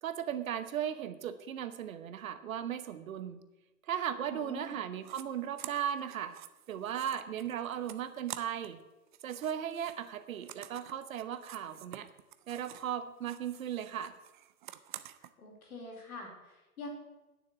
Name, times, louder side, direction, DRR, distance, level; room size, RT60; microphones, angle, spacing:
voice 1, 0.0-3.4 3.9-6.4 6.7-8.8 9.2-12.1 12.5-14.2, right 9 dB, 60° right, 12 dB, 1.0 m, -37 dB
voice 2, 4.3-4.8 15.4-16.9, left 3 dB, 65° left, 0 dB, 4.1 m, -45 dB
sound 1, 5.0-5.2 5.6-8.8 9.1-12.9 13.2-15.3, right 13 dB, 35° right, 0.5 m, -49 dB
9.6 x 7.1 x 7.3 m, 1.1 s
figure-of-eight pair, 110°, 46 cm